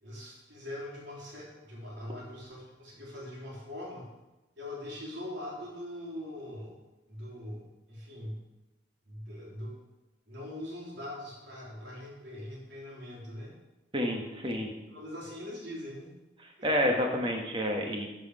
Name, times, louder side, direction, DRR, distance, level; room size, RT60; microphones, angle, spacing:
voice 1, 0.0-4.1 4.6-6.8 7.1-7.6 7.9-8.4 9.1-9.8 10.3-13.5 14.9-16.1 16.6-16.7, left 1 dB, 75° right, -4 dB, 3.0 m, -42 dB
voice 2, 13.9-14.7 16.6-18.1, equal, 25° right, 1 dB, 1.3 m, -29 dB
12.0 x 4.9 x 4.8 m, 1.1 s
head